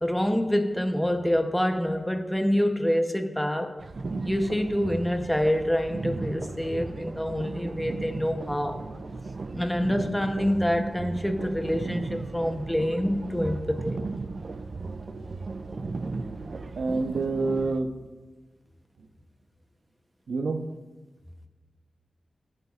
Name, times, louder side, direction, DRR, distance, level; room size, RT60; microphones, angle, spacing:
voice 1, 0.0-3.7 4.2-8.8 9.5-14.0, equal, 5° left, 6 dB, 0.8 m, -26 dB
sound 1, 3.8-17.8, right 3 dB, 45° right, 0.4 m, -36 dB
voice 2, 16.8-17.9 20.3-20.6, right 3 dB, 75° right, 5 dB, 0.8 m, -27 dB
16.5 x 7.7 x 2.4 m, 1.2 s
wide cardioid pair, 130°, 0 cm